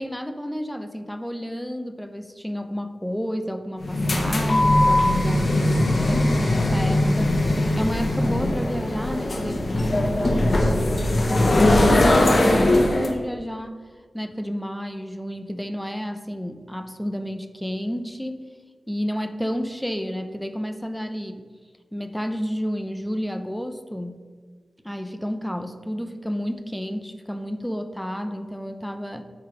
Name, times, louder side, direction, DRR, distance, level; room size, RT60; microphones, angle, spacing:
voice 1, 0.0-7.4 7.7-13.8 14.1-18.4 18.9-21.5 21.9-24.2 24.8-29.2, equal, 5° left, 8 dB, 0.5 m, -30 dB
sound 1, 3.8-13.1, left 1 dB, 45° left, 0.9 m, -20 dB
8.9 x 3.4 x 6.1 m, 1.5 s
wide cardioid pair, 130°, 0 cm